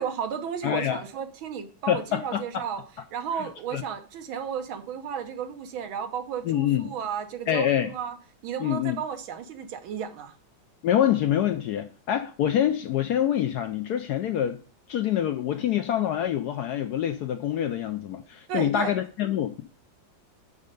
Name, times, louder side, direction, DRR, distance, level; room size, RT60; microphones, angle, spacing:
voice 1, 0.0-2.8 3.1-8.2 8.4-10.3 18.5-18.9, right 7 dB, 85° right, 1.8 m, -33 dB
voice 2, 0.6-1.0 1.9-2.6 3.4-3.8 6.4-6.9 7.5-7.9 8.6-9.0 10.8-14.6 14.9-19.6, left 10 dB, 75° left, 0.9 m, -26 dB
6.3 x 5.5 x 5.2 m
omnidirectional pair, 2.1 m